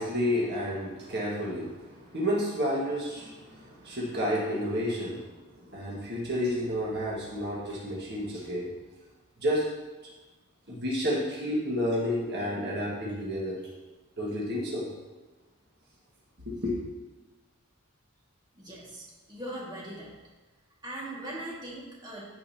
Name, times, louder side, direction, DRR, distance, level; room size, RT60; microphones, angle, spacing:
voice 1, 0.0-5.3 5.6-8.7 9.4-9.7 10.0-10.1 10.7-13.6 14.2-14.9 16.5-16.8, equal, 50° right, -4 dB, 1.7 m, -30 dB
voice 2, 18.5-20.1 20.8-22.2, right 1 dB, 20° right, -6 dB, 1.9 m, -40 dB
14.5 x 5.4 x 2.8 m, 1.2 s
head